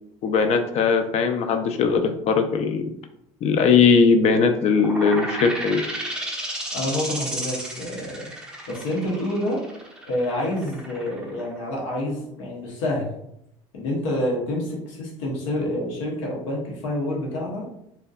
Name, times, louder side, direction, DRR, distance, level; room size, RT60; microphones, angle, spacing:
voice 1, 0.2-2.9 3.4-5.8, left 5 dB, 45° left, 7 dB, 0.4 m, -19 dB
sound 1, 4.8-12.1, right 1 dB, 5° right, 0.6 m, -33 dB
voice 2, 6.7-8.3 8.7-9.6 10.1-13.1 13.7-17.6, left 1 dB, 90° left, -3 dB, 0.8 m, -27 dB
2.5 x 2.2 x 2.3 m, 0.78 s
supercardioid pair, 90°, 15 cm